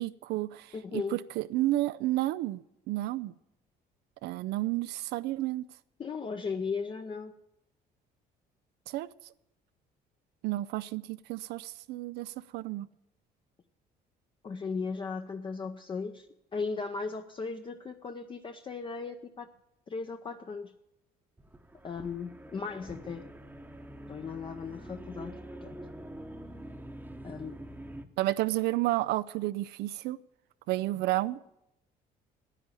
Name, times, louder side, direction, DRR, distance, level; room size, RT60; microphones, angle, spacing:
voice 1, 0.0-2.6 2.9-3.3 4.2-5.7 8.9-9.1 10.4-12.9 28.2-30.2 30.7-31.6, right 16 dB, 80° right, 15 dB, 0.4 m, -31 dB
voice 2, 0.7-1.2 6.0-7.3 14.4-19.5 19.9-20.7 21.8-23.2 24.1-25.8 27.2-27.6, left 5 dB, 30° left, 6 dB, 0.7 m, -37 dB
sound 1, 21.4-28.0, right 1 dB, 10° right, 0.9 m, -45 dB
9.9 x 8.9 x 9.6 m, 0.86 s
cardioid pair, 110°, 17 cm